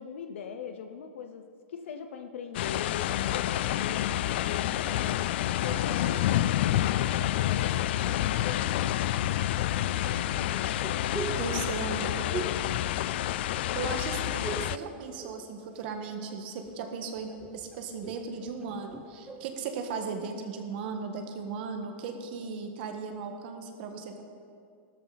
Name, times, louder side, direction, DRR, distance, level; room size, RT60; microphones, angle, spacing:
voice 1, 0.0-5.2 5.6-10.7 11.2-11.6 11.9-12.6, left 7 dB, 85° left, 6 dB, 0.8 m, -41 dB
sound 1, 2.5-14.8, left 13 dB, 60° left, 0.4 m, -28 dB
sound 2, 4.8-7.0 7.7-8.6 9.6-13.6 13.9-14.8 15.1-16.0 16.3-19.5, right 4 dB, 10° right, 0.7 m, -43 dB
voice 2, 11.4-12.3 13.7-24.2, right 5 dB, 55° right, 4 dB, 1.5 m, -37 dB
14.5 x 13.0 x 4.1 m, 2.4 s
supercardioid pair, 155°, 6 cm